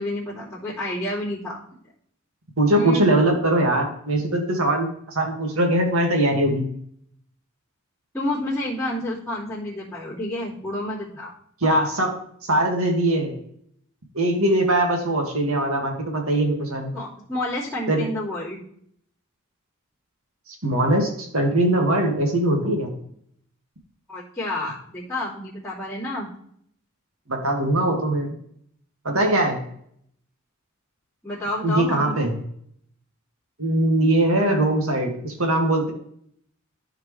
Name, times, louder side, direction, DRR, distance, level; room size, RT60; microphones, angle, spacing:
voice 1, 0.0-1.6 2.7-3.1 8.1-11.3 16.9-18.6 24.1-26.3 31.2-32.1, left 1 dB, 5° left, -14 dB, 2.7 m, -29 dB
voice 2, 2.6-6.7 11.6-12.1 12.4-13.4 14.1-16.9 17.9-18.1 20.6-22.9 27.3-28.3 29.0-29.6 31.6-32.3 33.6-35.9, right 1 dB, 80° right, 2 dB, 2.0 m, -21 dB
13.0 x 4.9 x 3.2 m, 0.67 s
head